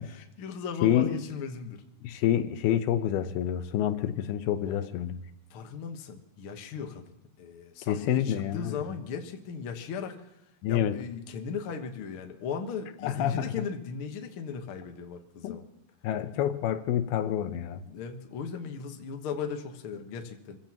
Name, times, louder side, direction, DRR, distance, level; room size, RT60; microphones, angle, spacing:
voice 1, 0.0-1.8 4.7-4.9 5.5-10.2 10.7-15.6 17.9-20.6, left 6 dB, 65° left, 4 dB, 1.3 m, -37 dB
voice 2, 0.8-1.1 2.0-5.2 7.9-8.8 10.6-11.0 13.0-13.5 15.4-15.6 16.0-17.8, left 11 dB, 85° left, 10 dB, 2.8 m, -27 dB
26.5 x 15.5 x 3.0 m, 0.85 s
omnidirectional pair, 4.4 m